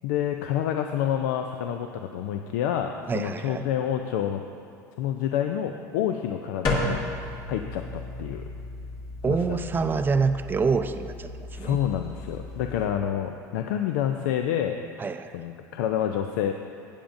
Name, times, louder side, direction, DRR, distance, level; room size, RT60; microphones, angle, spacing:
voice 1, 0.0-4.4 5.0-7.1 7.5-8.4 9.3-9.6 11.5-14.9 15.3-16.5, left 10 dB, 85° left, 5 dB, 0.4 m, -28 dB
voice 2, 3.1-3.7 9.2-11.8 15.0-15.3, right 5 dB, 25° right, 9 dB, 0.5 m, -26 dB
sound 1, 6.6-12.8, left 2 dB, 55° left, 1.9 m, -34 dB
15.0 x 8.8 x 2.6 m, 2.5 s
supercardioid pair, 95°, 9 cm